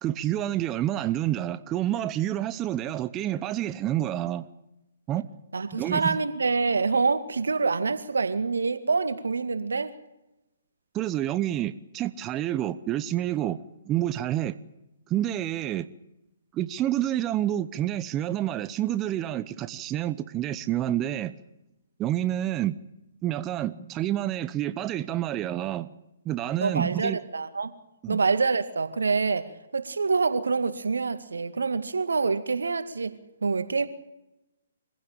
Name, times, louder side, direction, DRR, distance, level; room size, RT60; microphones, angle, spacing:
voice 1, 0.0-4.5 5.1-5.3 5.7-6.2 10.9-13.6 13.8-14.6 15.1-15.9 16.5-21.3 22.0-22.8 23.2-25.9 26.2-27.2 28.0-28.2, right 12 dB, 25° right, 0.9 m, -28 dB
voice 2, 5.5-9.9 26.6-27.7 28.1-33.9, right 4 dB, 80° right, 2.1 m, -26 dB
25.0 x 16.0 x 8.9 m
figure-of-eight pair, 135°, 0 cm